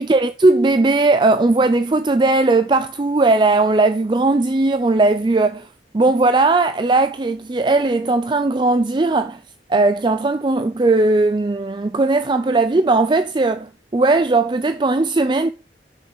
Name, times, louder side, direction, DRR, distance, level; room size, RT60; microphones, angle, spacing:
voice 1, 0.0-5.7 5.9-9.4 9.7-15.5, right 2 dB, 25° right, 0.4 m, -17 dB
7.1 x 6.3 x 7.0 m
head